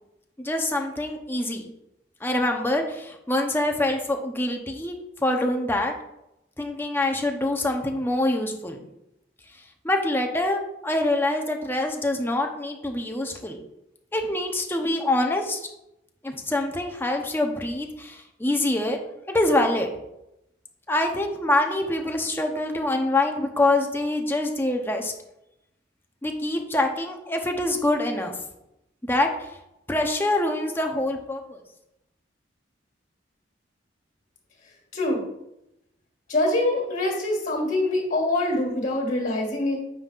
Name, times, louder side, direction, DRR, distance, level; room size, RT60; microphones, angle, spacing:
voice 1, 0.4-1.7 2.2-5.0 5.2-5.9 6.6-8.8 9.8-13.6 14.1-15.6 16.2-19.0 19.3-19.9 20.9-25.1 26.2-28.3 29.0-29.3 29.9-31.6, left 1 dB, 10° left, 3 dB, 0.8 m, -25 dB
voice 2, 34.9-35.2 36.3-39.8, left 1 dB, 45° left, 1 dB, 2.1 m, -24 dB
9.0 x 5.4 x 2.5 m, 0.87 s
head